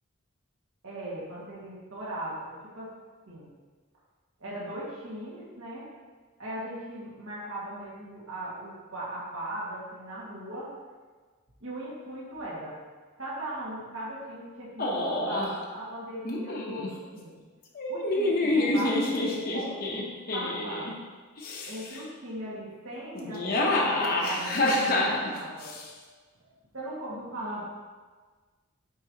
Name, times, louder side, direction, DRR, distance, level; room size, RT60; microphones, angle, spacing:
voice 1, 0.8-2.9 3.3-3.5 4.4-5.9 6.4-10.7 11.6-12.8 13.2-17.4 17.9-20.9 21.6-25.7 26.7-27.6, right 1 dB, 75° right, -7 dB, 1.8 m, -38 dB
sound 1, 14.8-15.5 16.2-16.9 17.7-20.9 21.4-22.0 23.1-25.8, left 2 dB, 45° left, 0.8 m, -27 dB
8.4 x 4.6 x 2.9 m, 1.4 s
head